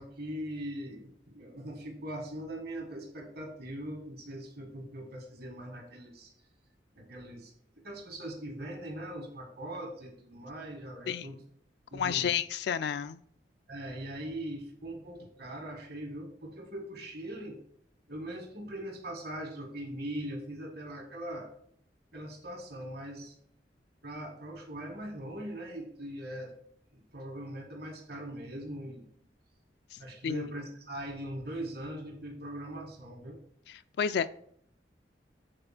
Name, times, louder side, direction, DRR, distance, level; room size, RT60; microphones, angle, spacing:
voice 1, 0.0-6.3 7.0-11.4 11.9-12.3 13.7-17.6 18.1-21.5 22.1-23.4 24.0-26.5 26.9-29.1 30.0-33.4, right 1 dB, 65° right, 1.8 m, -41 dB
voice 2, 11.9-13.2 29.9-30.0 30.2-30.5 33.7-34.3, left 8 dB, 70° left, 0.3 m, -31 dB
7.8 x 4.1 x 5.9 m
head